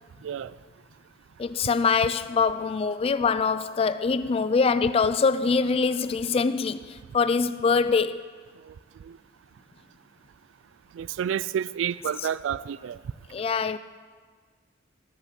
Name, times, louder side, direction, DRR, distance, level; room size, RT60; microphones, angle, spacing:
voice 1, 1.4-8.3 12.2-12.3 13.3-13.8, left 5 dB, 30° left, 0.3 m, -24 dB
voice 2, 11.0-13.0, right 8 dB, 85° right, 0.3 m, -29 dB
13.5 x 5.6 x 5.9 m
head